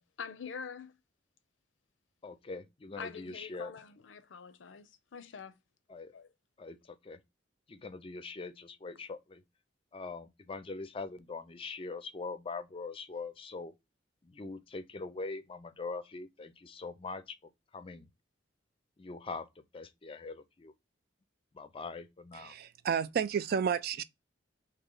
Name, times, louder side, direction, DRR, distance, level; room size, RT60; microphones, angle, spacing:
voice 1, 0.2-0.9 3.0-5.5 6.1-6.3, left 6 dB, 85° left, 0.5 m, -45 dB
voice 2, 2.2-3.7 5.9-6.1 6.6-7.2 7.7-9.4 9.9-13.7 14.2-17.4 17.7-18.1 19.0-19.5 19.7-20.7 21.5-22.5, left 3 dB, 30° left, 0.4 m, -42 dB
voice 3, 22.3-24.0, right 7 dB, 55° right, 0.3 m, -31 dB
3.1 x 2.8 x 3.7 m
head